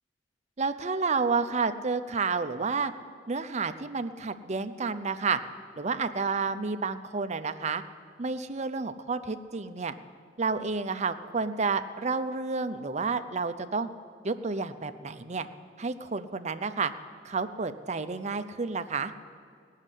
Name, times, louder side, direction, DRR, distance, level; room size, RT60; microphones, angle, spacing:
voice 1, 0.6-2.9 3.3-5.4 5.8-7.8 8.2-9.9 10.4-13.9 14.2-15.5 15.8-16.9 17.2-19.1, right 4 dB, 40° right, 10 dB, 0.6 m, -30 dB
17.5 x 6.5 x 9.9 m, 2.2 s
head